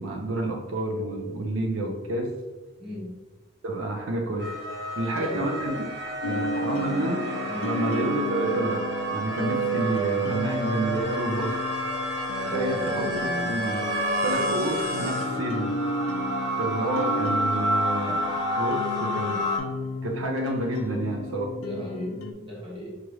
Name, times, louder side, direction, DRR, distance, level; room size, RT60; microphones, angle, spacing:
voice 1, 0.0-2.3 3.6-4.6 5.0-5.8 6.2-7.2 7.6-11.6 12.4-13.9 14.2-15.8 16.6-18.2 18.6-19.5 20.0-21.5, right 1 dB, 80° right, 1 dB, 0.5 m, -29 dB
voice 2, 2.8-3.1 5.1-5.5 7.4-7.7 12.4-13.1 21.5-23.0, left 1 dB, 25° right, -6 dB, 1.1 m, -36 dB
sound 1, 4.4-19.6, right 1 dB, 55° right, 0.9 m, -29 dB
Wind instrument woodwind instrument, 5.6-11.4, left 1 dB, 5° left, 0.6 m, -41 dB
sound 2, 6.2-22.3, left 3 dB, 85° left, 0.4 m, -34 dB
4.7 x 2.4 x 3.0 m, 1.2 s
head